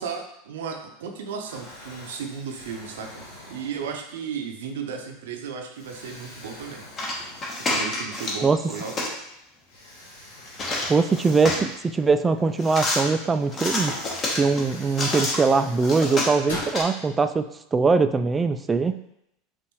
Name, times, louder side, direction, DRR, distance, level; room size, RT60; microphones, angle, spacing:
voice 1, 0.0-6.8 7.7-8.9, right 6 dB, 75° right, 4 dB, 0.6 m, -35 dB
Explosion, 0.7-1.1 1.4-4.3 4.9-5.0 5.7-8.0 8.3-8.4 9.7-12.3 13.7-13.8 14.3-16.8, left 1 dB, 80° left, 1.5 m, -43 dB
sound 1, 7.0-8.4 8.7-9.1 10.5-11.7 12.6-13.0 13.5-15.4 15.8-16.8, left 2 dB, 35° left, 1.1 m, -28 dB
voice 2, 10.9-14.0 14.4-19.0, right 4 dB, 20° right, 10 dB, 0.3 m, -22 dB
5.3 x 2.5 x 3.1 m, 0.79 s
hypercardioid pair, 90°, 0 cm